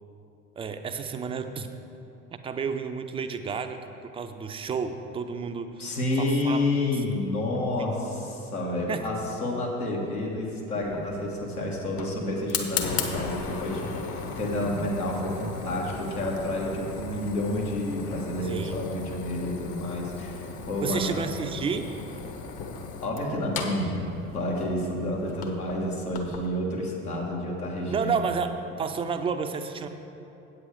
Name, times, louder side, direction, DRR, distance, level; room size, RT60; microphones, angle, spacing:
voice 1, 0.6-1.7 2.4-3.8 4.1-6.6 7.8-7.9 8.9-9.0 13.0-13.1 18.5-18.8 20.8-22.0 27.9-29.9, right 6 dB, 15° right, 7 dB, 0.3 m, -31 dB
voice 2, 5.8-21.2 23.0-28.3, left 1 dB, 85° left, -3 dB, 1.5 m, -29 dB
Fire, 10.8-26.5, left 5 dB, 50° left, 1.1 m, -37 dB
8.4 x 7.8 x 4.9 m, 2.8 s
figure-of-eight pair, 65°, 43 cm